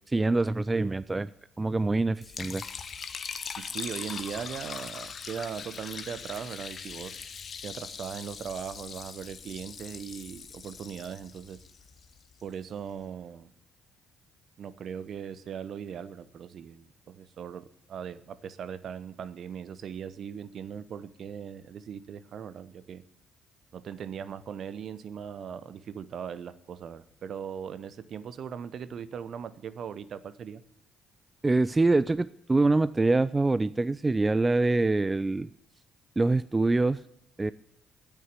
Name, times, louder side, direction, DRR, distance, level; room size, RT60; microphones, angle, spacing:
voice 1, 0.1-1.3 1.6-2.6 31.4-35.5 36.2-37.0 37.4-37.5, right 3 dB, 20° right, 16 dB, 0.4 m, -25 dB
Liquid, 2.2-12.4, left 6 dB, 45° left, 0.9 m, -41 dB
voice 2, 3.6-7.3 7.6-11.6 12.4-13.5 14.6-23.0 23.7-30.6, right 7 dB, 55° right, 14 dB, 0.8 m, -39 dB
9.5 x 8.4 x 7.4 m, 0.74 s
hypercardioid pair, 50°, 0 cm